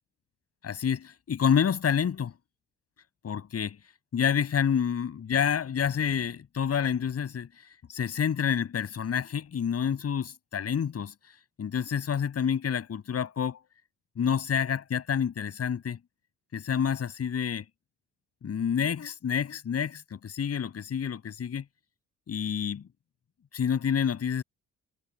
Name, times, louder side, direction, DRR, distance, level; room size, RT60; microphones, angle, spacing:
voice 1, 0.6-2.3 3.2-3.8 4.1-7.5 7.9-11.1 11.6-13.6 14.2-16.0 16.5-17.6 18.4-21.6 22.3-22.8 23.5-24.4, left 7 dB, 55° left, 7.5 m, -28 dB
cardioid pair, 90°, 30 cm